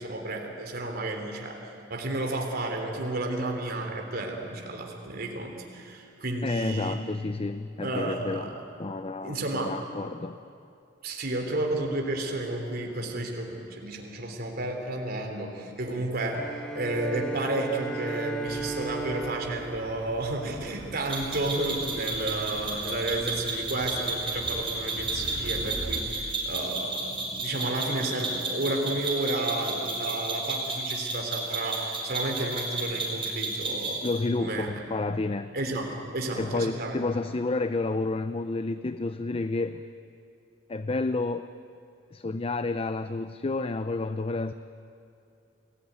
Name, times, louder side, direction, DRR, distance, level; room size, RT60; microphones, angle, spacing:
voice 1, 0.0-1.6 1.9-7.0 7.8-8.5 9.2-9.7 11.0-34.0 34.4-34.7 35.5-37.0, right 2 dB, 55° right, 2 dB, 3.4 m, -32 dB
voice 2, 6.4-8.5 8.8-10.4 34.0-35.5 36.4-39.8 40.7-41.5 42.1-44.5, left 3 dB, 30° left, 11 dB, 0.5 m, -30 dB
Bowed string instrument, 16.3-21.0, right 3 dB, 5° left, 1.6 m, -36 dB
sound 1, 18.5-26.0, right 1 dB, 80° right, 3.2 m, -43 dB
sound 2, 21.1-34.2, right 3 dB, 25° right, 5.8 m, -32 dB
29.5 x 19.0 x 9.5 m, 2.6 s
head